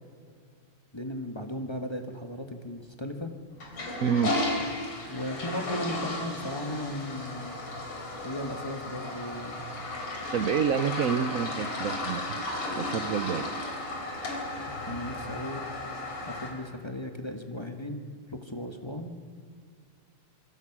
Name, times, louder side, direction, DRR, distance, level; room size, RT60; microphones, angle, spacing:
voice 1, 0.9-3.3 5.1-7.6 8.2-9.7 14.8-15.9 16.2-19.2, left 1 dB, 15° left, 5 dB, 1.3 m, -36 dB
Toilet flush, 3.5-16.5, left 2 dB, 80° left, 4.6 m, -34 dB
voice 2, 4.0-4.4 10.3-12.4 12.7-13.5, right 7 dB, 90° right, 11 dB, 0.7 m, -28 dB
27.0 x 23.0 x 6.1 m, 2.1 s
omnidirectional pair, 2.4 m